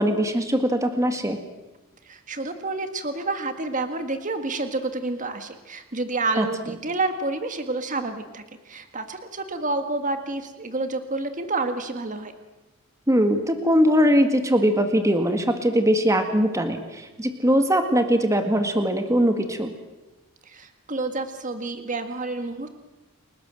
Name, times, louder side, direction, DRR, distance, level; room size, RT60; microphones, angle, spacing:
voice 1, 0.0-1.4 6.4-6.5 13.1-19.7, equal, 15° right, 6 dB, 1.9 m, -21 dB
voice 2, 2.1-12.3 20.5-22.7, right 3 dB, 35° right, 7 dB, 1.8 m, -29 dB
30.0 x 19.0 x 7.7 m, 1.1 s
head